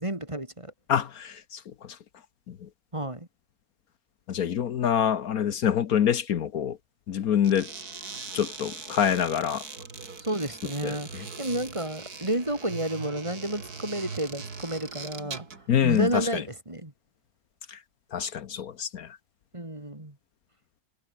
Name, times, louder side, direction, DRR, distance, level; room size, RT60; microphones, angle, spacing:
voice 1, 0.0-0.7 2.9-3.3 10.2-16.9 19.5-20.2, right 1 dB, 20° right, 3.1 m, -31 dB
voice 2, 0.9-2.0 2.5-2.7 4.3-6.8 7.1-7.7 8.3-9.6 10.8-10.9 15.7-16.4 17.7-17.8 18.1-19.1, left 9 dB, 70° left, 1.4 m, -26 dB
sound 1, 7.4-15.7, right 4 dB, 70° right, 3.2 m, -41 dB
omnidirectional pair, 1.7 m